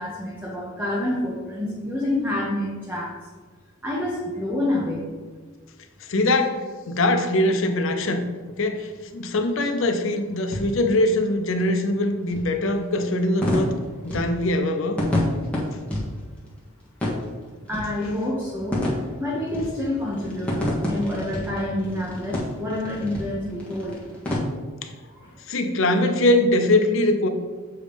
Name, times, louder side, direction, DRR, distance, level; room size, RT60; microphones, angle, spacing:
voice 1, 0.0-3.1 3.8-5.0 17.7-18.8 19.2-24.0 25.1-25.4, left 1 dB, 10° right, -6 dB, 0.9 m, -28 dB
voice 2, 6.1-8.2 8.6-13.7 14.0-15.0 25.5-27.3, left 1 dB, 65° left, 6 dB, 0.6 m, -22 dB
sound 1, 7.5-24.4, left 1 dB, 5° left, 1.3 m, -31 dB
7.0 x 3.1 x 5.2 m, 1.4 s
head